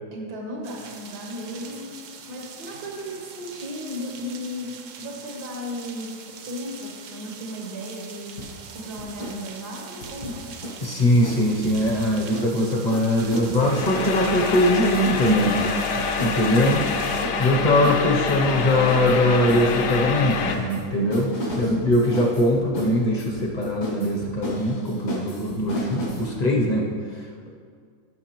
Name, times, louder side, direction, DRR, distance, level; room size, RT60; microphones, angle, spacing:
voice 1, 0.1-1.9 2.3-8.4 8.7-10.5 21.4-22.3, left 1 dB, 85° right, -1 dB, 1.7 m, -35 dB
sound 1, 0.6-17.3, right 6 dB, 65° right, 0.9 m, -42 dB
sound 2, 8.4-9.4 9.6-12.6 12.9-26.3, equal, 80° left, 1.9 m, -35 dB
voice 2, 10.8-15.6 16.2-16.9 17.4-26.9, left 1 dB, 40° left, -1 dB, 0.6 m, -21 dB
sound 3, 13.6-20.6, left 4 dB, 65° left, 0.9 m, -26 dB
12.5 x 5.8 x 3.0 m, 2.1 s
omnidirectional pair, 1.7 m